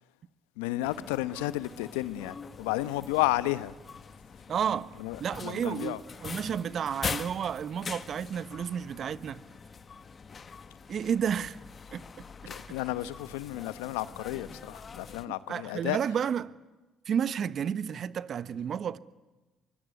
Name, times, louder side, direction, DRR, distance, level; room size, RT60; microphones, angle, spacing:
voice 1, 0.6-3.7 5.0-6.0 12.5-16.0, left 17 dB, 80° left, 1.0 m, -32 dB
sound 1, 0.8-15.3, left 5 dB, 40° left, 1.7 m, -43 dB
voice 2, 4.5-4.9 5.2-9.4 10.9-11.6 11.9-12.0 15.3-16.5 17.0-19.0, right 8 dB, 55° right, 1.2 m, -31 dB
24.0 x 23.0 x 9.5 m
hypercardioid pair, 55°, 0 cm